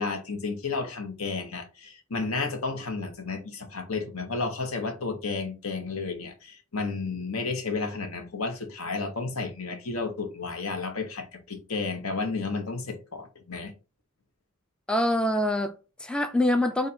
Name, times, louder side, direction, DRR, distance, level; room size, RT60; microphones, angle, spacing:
voice 1, 0.0-13.7, left 4 dB, 70° left, 1.1 m, -32 dB
voice 2, 14.9-16.9, left 1 dB, 5° left, 0.3 m, -25 dB
4.1 x 2.6 x 4.2 m
head